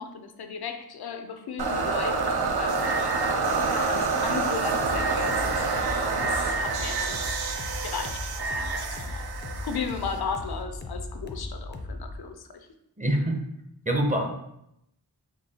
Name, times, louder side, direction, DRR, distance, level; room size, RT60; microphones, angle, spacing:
voice 1, 0.0-3.1 3.7-5.3 6.1-7.3 7.8-9.3 9.6-12.7, left 6 dB, 80° left, 7 dB, 0.5 m, -36 dB
sound 1, 1.6-10.6, right 4 dB, 85° right, 0.5 m, -27 dB
sound 2, 4.8-12.2, left 2 dB, 30° left, 0.4 m, -37 dB
voice 2, 13.0-13.4 13.9-14.3, right 1 dB, 20° right, 1 dB, 0.5 m, -24 dB
4.4 x 2.6 x 2.8 m, 0.80 s
wide cardioid pair, 75°, 37 cm